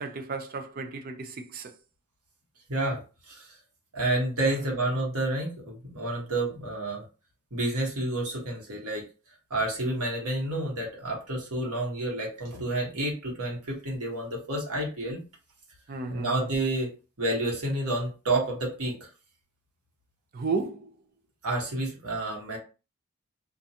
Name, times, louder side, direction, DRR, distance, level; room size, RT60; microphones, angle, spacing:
voice 1, 0.0-1.7 15.9-16.5 20.3-20.9, right 4 dB, 40° right, 0.4 m, -33 dB
voice 2, 2.7-3.0 3.3-3.6 3.9-7.0 7.5-9.0 9.5-15.2 16.1-16.9 17.2-19.1 21.4-22.6, right 1 dB, 80° right, 1.2 m, -29 dB
2.5 x 2.2 x 2.7 m
head